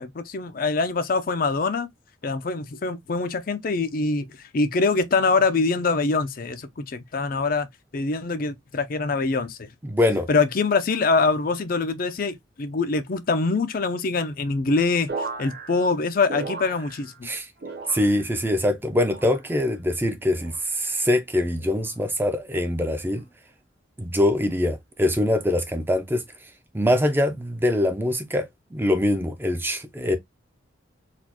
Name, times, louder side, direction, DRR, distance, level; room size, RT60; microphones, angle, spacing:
voice 1, 0.0-1.9 2.2-7.7 7.9-9.7 10.3-17.3, left 4 dB, 45° left, 0.5 m, -24 dB
voice 2, 9.8-10.3 17.2-17.5 17.9-23.2 24.0-26.2 26.7-28.5 28.7-30.2, left 1 dB, 10° right, 0.5 m, -23 dB
sound 1, 15.1-17.3 17.6-18.4 18.9-19.6 20.2-20.7 21.6-22.0 22.9-23.2, right 3 dB, 55° right, 1.0 m, -37 dB
4.1 x 2.4 x 2.8 m
head